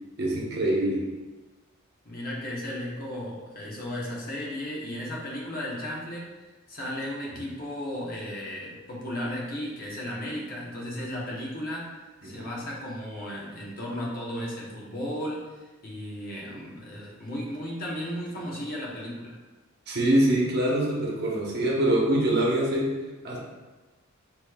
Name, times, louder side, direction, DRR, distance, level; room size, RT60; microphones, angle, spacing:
voice 1, 0.2-1.0 12.2-12.5 16.4-16.6 19.9-23.0 23.2-23.4, right 1 dB, 50° right, -3 dB, 1.0 m, -24 dB
voice 2, 2.0-6.3 6.7-11.9 12.2-19.4, left 1 dB, 45° left, -4 dB, 1.0 m, -35 dB
6.6 x 3.1 x 2.3 m, 1.2 s
head